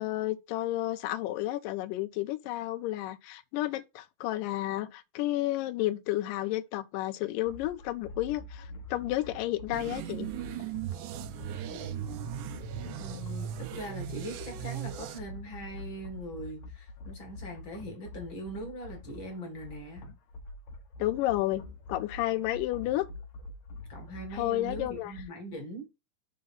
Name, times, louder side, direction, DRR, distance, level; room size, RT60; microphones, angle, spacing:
voice 1, 0.0-10.3 21.0-23.1 24.3-25.1, left 15 dB, 80° left, 2.2 m, -31 dB
sound 1, 7.4-25.2, left 2 dB, 60° left, 2.1 m, -46 dB
sound 2, 9.7-15.2, right 11 dB, 80° right, 1.9 m, -38 dB
voice 2, 11.7-12.1 13.0-20.0 23.9-25.9, right 1 dB, 40° left, 2.3 m, -41 dB
5.3 x 3.7 x 5.5 m
omnidirectional pair, 4.0 m